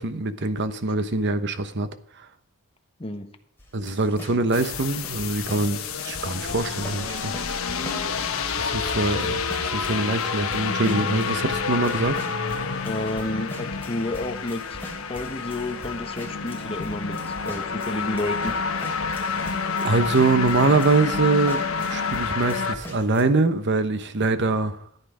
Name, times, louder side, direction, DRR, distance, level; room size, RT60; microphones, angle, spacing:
voice 1, 0.0-1.9 3.7-7.3 8.5-12.2 19.8-24.8, right 3 dB, 55° right, 11 dB, 1.0 m, -24 dB
sound 1, 3.6-22.2 22.5-23.2, left 1 dB, 10° left, 3.0 m, -42 dB
sound 2, 4.5-22.7, left 5 dB, 75° left, 1.2 m, -28 dB
voice 2, 12.9-14.8 15.1-18.6, left 2 dB, 25° left, 6 dB, 1.1 m, -30 dB
14.0 x 9.4 x 5.0 m, 0.62 s
head